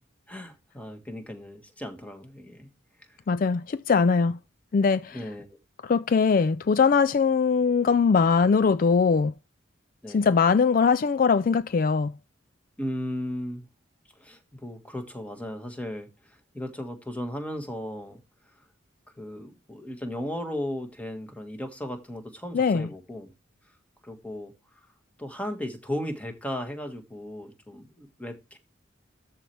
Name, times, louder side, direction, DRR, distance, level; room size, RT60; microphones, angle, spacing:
voice 1, 0.3-2.7 3.0-3.2 5.1-5.6 10.0-10.3 12.8-13.7 14.1-18.2 18.6-18.7 19.2-23.3 24.0-24.8 25.2-28.6, left 1 dB, 5° left, 1.7 m, -36 dB
voice 2, 3.3-4.4 4.7-5.2 5.8-9.3 10.1-12.1 22.5-22.9, left 5 dB, 45° left, 0.3 m, -21 dB
13.5 x 4.4 x 3.3 m
head